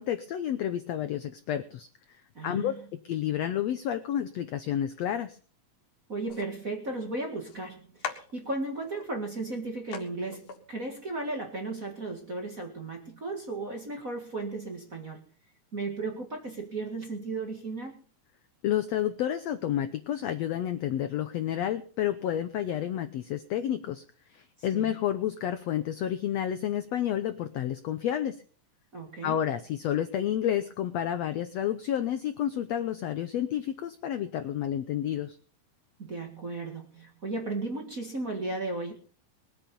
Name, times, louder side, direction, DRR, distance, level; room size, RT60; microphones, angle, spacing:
voice 1, 0.0-1.9 2.4-2.7 3.0-5.4 18.6-24.0 24.3-28.4 29.2-35.4, left 10 dB, 80° left, 9 dB, 1.5 m, -30 dB
voice 2, 2.3-2.8 6.1-15.2 15.7-18.0 24.7-25.0 28.9-29.4 36.0-39.0, right 2 dB, 35° right, 3 dB, 1.6 m, -35 dB
sound 1, 6.3-6.5 7.5-7.6 8.0-9.1 9.5-9.6 9.9-10.1 10.3-10.6, left 7 dB, 60° left, 2.9 m, -40 dB
21.5 x 8.8 x 5.3 m, 0.42 s
omnidirectional pair, 4.0 m